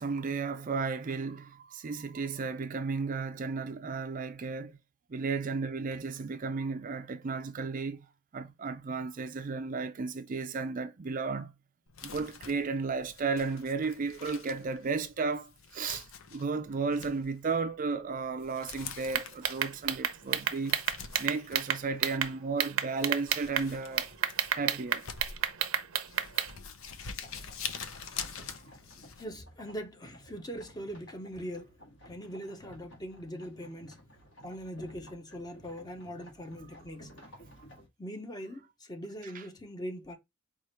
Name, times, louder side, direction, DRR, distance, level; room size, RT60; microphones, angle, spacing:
voice 1, 0.0-4.8 5.1-8.1 8.3-11.5 12.0-20.8 21.2-24.1 24.5-25.0 28.0-28.2 39.3-39.4, right 4 dB, 40° right, 0.4 m, -34 dB
Crumpling crinkling, 11.9-29.2, left 6 dB, 80° left, 0.7 m, -46 dB
sound 1, 19.1-22.3 22.6-23.7 24.0-26.5, right 9 dB, 85° right, 0.7 m, -29 dB
sound 2, 27.2-37.9, equal, 65° left, 1.6 m, -55 dB
voice 2, 29.2-31.8 32.1-34.0 34.4-37.1 38.0-40.2, equal, 20° left, 0.8 m, -41 dB
4.9 x 2.5 x 4.4 m
head